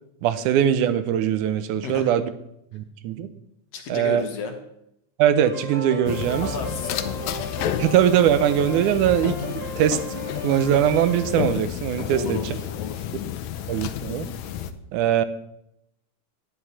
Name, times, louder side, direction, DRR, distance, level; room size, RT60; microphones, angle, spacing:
voice 1, 0.2-2.3 2.7-3.3 3.9-4.2 5.2-6.5 7.8-12.4 13.7-14.3 14.9-15.3, right 10 dB, 80° right, 12 dB, 2.2 m, -21 dB
voice 2, 3.7-4.5 6.4-7.2 12.1-13.1, left 4 dB, 60° left, 4 dB, 2.1 m, -32 dB
sound 1, 5.3-11.3, left 1 dB, 25° right, 1.3 m, -35 dB
sound 2, 6.1-14.7, left 10 dB, 75° left, 1.9 m, -31 dB
11.0 x 9.9 x 4.1 m, 0.78 s
omnidirectional pair, 3.5 m